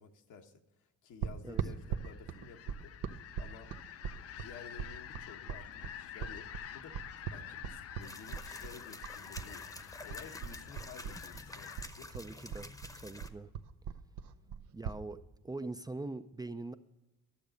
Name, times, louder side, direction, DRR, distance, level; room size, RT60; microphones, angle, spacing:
voice 1, 0.0-2.9 3.4-3.7 4.3-7.0 7.3-12.1, left 6 dB, 75° left, 5 dB, 1.2 m, -53 dB
sound 1, 1.2-9.5 9.8-11.5 11.8-15.0, right 8 dB, 85° right, 0.7 m, -40 dB
sound 2, 1.5-11.9, left 10 dB, 55° left, 0.5 m, -49 dB
sound 3, 8.0-13.3, left 2 dB, 10° left, 0.8 m, -49 dB
voice 2, 12.1-13.5 14.7-15.2 15.4-16.7, right 2 dB, 15° right, 10 dB, 0.4 m, -42 dB
12.0 x 7.1 x 5.1 m, 1.1 s
cardioid pair, 90°, 30 cm